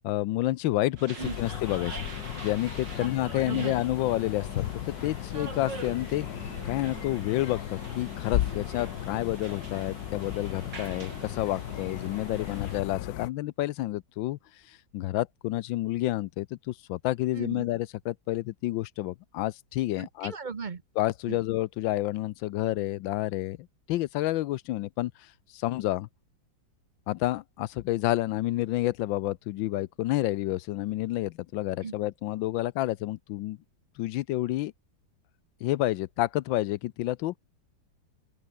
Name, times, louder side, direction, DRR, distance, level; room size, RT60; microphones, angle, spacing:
voice 1, 0.0-2.0 2.4-6.3 6.6-14.4 14.7-20.3 21.0-23.6 23.9-26.1 27.1-33.6 34.0-34.7 35.6-37.4, left 16 dB, 85° left, 1.4 m, -29 dB
sound 1, 1.0-12.8, right 4 dB, 70° right, 4.5 m, -44 dB
sound 2, 1.2-13.3, left 13 dB, 65° left, 1.1 m, -36 dB
voice 2, 3.3-3.7 17.4-17.6 20.0-20.8 21.3-21.4 31.8-31.9, right 5 dB, 40° right, 0.7 m, -36 dB
open air
omnidirectional pair, 2.0 m